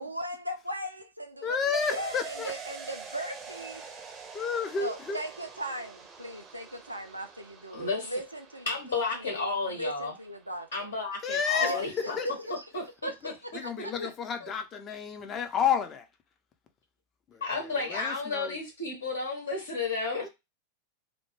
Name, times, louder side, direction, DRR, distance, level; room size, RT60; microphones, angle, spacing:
voice 1, 0.0-1.6 1.9-3.8 4.8-8.7 9.1-10.9 11.6-12.3 13.0-13.1 13.4-13.9, right 1 dB, 85° right, 0.3 m, -38 dB
voice 2, 1.4-2.5 4.3-5.2 11.2-12.3 13.5-16.1 17.3-18.6 20.2-20.3, left 6 dB, 25° left, 0.5 m, -31 dB
sound 1, 1.7-11.1 11.4-11.5, right 5 dB, 25° right, 0.5 m, -46 dB
voice 3, 7.7-8.1 8.7-10.1 10.7-12.2 12.7-12.8 14.0-14.1 14.4-14.5 17.4-20.3, left 3 dB, 70° left, 0.8 m, -32 dB
2.1 x 2.1 x 3.1 m
figure-of-eight pair, 90°, 0 cm